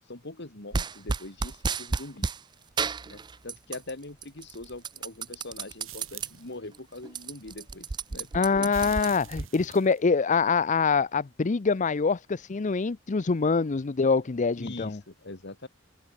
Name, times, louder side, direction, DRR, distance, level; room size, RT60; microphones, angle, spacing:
voice 1, 0.1-2.4 3.0-9.2 14.6-15.7, left 2 dB, 60° left, 2.8 m, -42 dB
sound 1, 0.7-2.4 2.8-3.9 4.2-6.3 6.7-6.8 7.0-9.5, right 4 dB, 20° right, 0.4 m, -32 dB
sound 2, 5.8-6.5 8.7-10.0, right 13 dB, 80° right, 7.3 m, -46 dB
voice 2, 8.3-15.0, left 4 dB, 40° left, 0.5 m, -25 dB
head